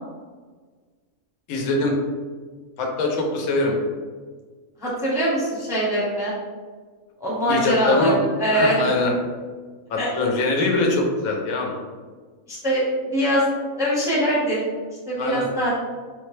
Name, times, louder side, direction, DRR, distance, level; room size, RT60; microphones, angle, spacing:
voice 1, 1.5-1.9 2.8-3.7 7.5-8.2 8.5-9.2 9.9-11.8 15.2-15.5, left 2 dB, 85° left, 0 dB, 1.1 m, -23 dB
voice 2, 4.8-6.3 7.2-9.0 10.0-10.1 12.5-12.8 13.1-13.4 13.8-14.6 15.1-15.7, equal, 5° right, -6 dB, 0.5 m, -22 dB
3.6 x 2.1 x 3.1 m, 1.5 s
omnidirectional pair, 1.4 m